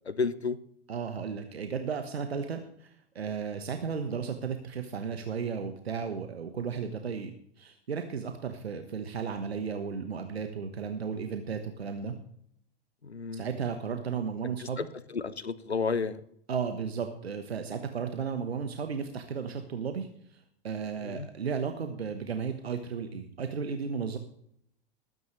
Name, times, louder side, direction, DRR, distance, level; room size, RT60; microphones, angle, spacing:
voice 1, 0.1-0.6 13.0-13.4 14.6-14.8 15.1-16.2 21.0-21.3, left 5 dB, 85° left, 16 dB, 0.9 m, -31 dB
voice 2, 0.9-7.3 7.6-12.1 13.3-14.9 16.5-24.2, right 6 dB, 75° right, 7 dB, 1.3 m, -34 dB
20.0 x 9.6 x 3.2 m, 0.69 s
figure-of-eight pair, 90°, 32 cm